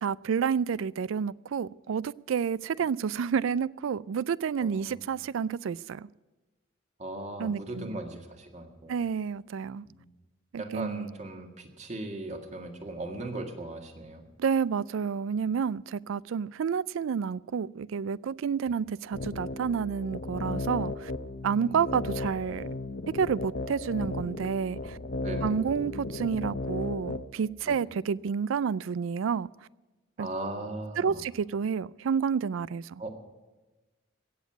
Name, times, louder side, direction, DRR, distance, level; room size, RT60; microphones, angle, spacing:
voice 1, 0.0-6.1 7.4-8.0 8.9-9.8 10.5-11.1 14.4-21.1 21.4-22.7 23.1-25.0 25.4-29.5 30.2-30.3 31.0-33.0, right 6 dB, 80° right, 0.3 m, -30 dB
voice 2, 4.6-5.0 7.0-9.0 9.9-10.1 10.6-14.2 18.7-18.8 21.5-22.0 25.2-25.6 27.6-27.8 30.2-31.2 33.0-33.1, right 2 dB, 35° right, 1.8 m, -38 dB
sound 1, 19.1-27.3, left 2 dB, 55° left, 0.8 m, -35 dB
16.5 x 7.3 x 9.2 m
head